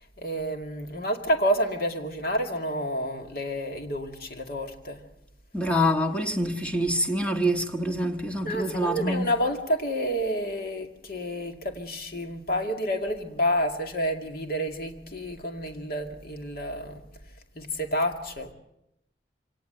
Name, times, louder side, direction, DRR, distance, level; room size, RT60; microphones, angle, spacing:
voice 1, 0.0-5.0 8.4-17.0 17.5-18.5, equal, 55° left, 2.2 m, -29 dB
voice 2, 5.5-9.3, equal, 5° left, 1.5 m, -26 dB
26.0 x 18.0 x 7.9 m
head